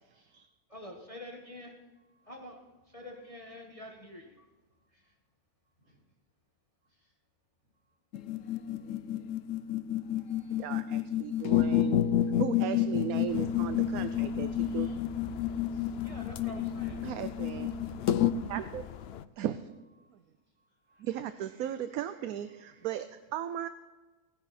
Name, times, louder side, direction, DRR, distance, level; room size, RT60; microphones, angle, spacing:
voice 1, 0.1-0.4 2.2-2.3 4.9-5.1 5.8-6.0 6.9-7.1 8.4-8.9 10.2-10.7 11.3-11.6 14.6-15.0 15.4-16.2 17.8-18.3 20.0-20.1 20.6-21.0 22.6-22.7, right 1 dB, 50° right, -4 dB, 5.4 m, -70 dB
voice 2, 0.7-1.8 2.3-4.4 16.0-17.0, left 1 dB, 20° left, 1 dB, 1.5 m, -47 dB
sound 1, 8.1-18.3, left 10 dB, 65° left, 0.9 m, -29 dB
voice 3, 10.6-12.0 12.4-14.9 17.0-18.0 18.3-18.8 19.4-19.6 20.1-20.2 21.0-23.7, right 11 dB, 70° right, 11 dB, 1.0 m, -37 dB
sound 2, 13.3-19.3, left 9 dB, 80° left, 0.5 m, -44 dB
18.0 x 10.5 x 4.2 m, 1.2 s
omnidirectional pair, 1.7 m